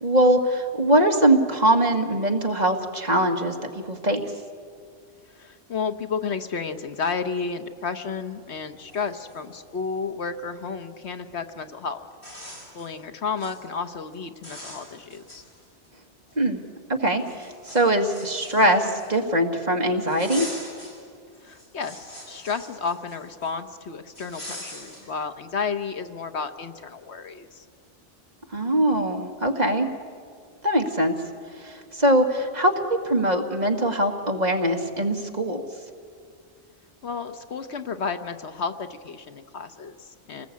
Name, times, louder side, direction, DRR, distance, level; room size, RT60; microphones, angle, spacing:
voice 1, 0.0-4.2 16.4-16.6 16.9-20.5 28.5-29.9 30.6-31.1 31.6-32.7 33.0-35.6, right 1 dB, 35° right, 3 dB, 1.9 m, -22 dB
voice 2, 5.3-12.1 12.7-15.4 21.4-27.6 37.0-40.5, left 5 dB, 65° left, 9 dB, 1.3 m, -32 dB
sound 1, 8.9-10.0 11.5-11.6 12.1-12.9 13.2-13.6 13.9-14.1 14.4-15.9 16.3-16.4 17.2-19.4 20.1-21.0 21.3-23.5 24.1-25.1, equal, 50° left, 8.3 m, -42 dB
28.0 x 20.0 x 8.5 m, 2.3 s
omnidirectional pair, 1.2 m